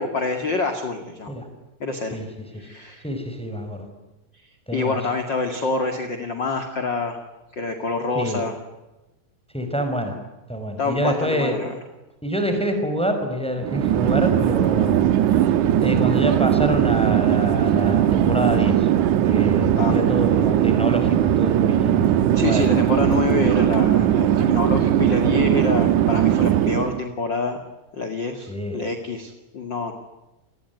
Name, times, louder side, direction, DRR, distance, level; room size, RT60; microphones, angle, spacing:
voice 1, 0.0-1.3 1.8-2.2 2.5-3.0 4.7-7.2 7.5-8.6 10.8-11.7 19.7-20.1 22.3-27.6 27.9-29.9, left 4 dB, 35° left, 6 dB, 2.1 m, -26 dB
voice 2, 3.0-3.8 4.7-5.0 8.1-8.4 9.5-10.2 10.5-11.5 12.2-15.1 15.8-18.9 19.2-22.0 22.4-22.7 28.5-28.8, equal, ahead, 6 dB, 4.9 m, -26 dB
Chatter / Fixed-wing aircraft airplane, 13.6-27.0, right 11 dB, 70° right, 1.9 m, -19 dB
29.0 x 20.5 x 9.5 m, 1.0 s
omnidirectional pair, 5.0 m